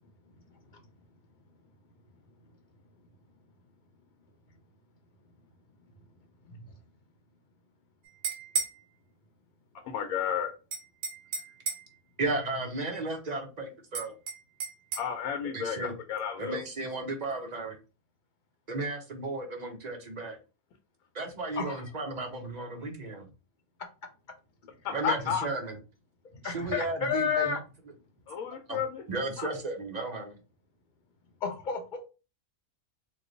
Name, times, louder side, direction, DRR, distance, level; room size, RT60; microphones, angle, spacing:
voice 1, 0.5-0.8 6.5-6.7 21.6-21.9 26.3-27.6 31.4-32.0, left 6 dB, 55° left, 4 dB, 0.5 m, -32 dB
sound 1, 8.0-8.8 10.7-11.9 13.9-15.1, right 5 dB, 75° right, 1.1 m, -34 dB
voice 2, 9.8-10.5 15.0-16.6 24.8-25.5 28.3-29.0 29.4-29.5, left 8 dB, 80° left, 5 dB, 1.0 m, -32 dB
voice 3, 12.2-14.1 15.5-15.9 16.4-17.8 18.7-20.4 21.1-23.3 24.9-25.8 26.4-27.5 28.7-28.8 29.1-30.4, right 2 dB, 50° right, 4 dB, 0.5 m, -34 dB
3.1 x 2.2 x 3.7 m, 0.32 s
omnidirectional pair, 1.4 m